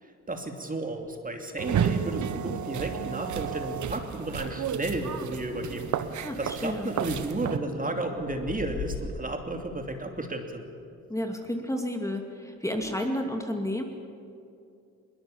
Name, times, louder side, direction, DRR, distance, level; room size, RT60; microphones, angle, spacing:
voice 1, 0.0-5.8 6.1-10.6, right 2 dB, 20° right, 4 dB, 2.7 m, -33 dB
sound 1, 1.0-2.4 2.7-3.0 3.3-3.5 3.9-9.0, left 6 dB, 70° left, 6.9 m, -44 dB
sound 2, 1.6-7.6, right 8 dB, 45° right, 1.3 m, -32 dB
voice 2, 6.2-6.9 11.1-13.8, left 1 dB, 10° left, 3 dB, 2.5 m, -31 dB
22.0 x 20.5 x 7.2 m, 2.6 s
hypercardioid pair, 60°, 40 cm